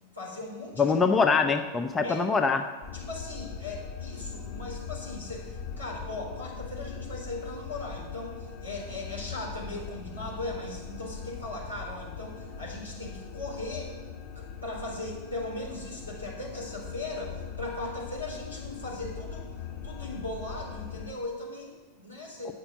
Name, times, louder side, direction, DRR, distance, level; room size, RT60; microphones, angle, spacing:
voice 1, 0.1-0.8 1.4-1.6 2.0-2.2 2.9-13.9 14.4-19.5 19.8-22.5, left 2 dB, 85° left, -5 dB, 3.9 m, -38 dB
voice 2, 0.8-2.6 22.4-22.5, left 5 dB, 15° left, 5 dB, 0.7 m, -24 dB
sound 1, 2.8-21.1, left 6 dB, 30° left, 1.6 m, -41 dB
9.0 x 6.6 x 8.5 m, 1.2 s
figure-of-eight pair, 90°, 0 cm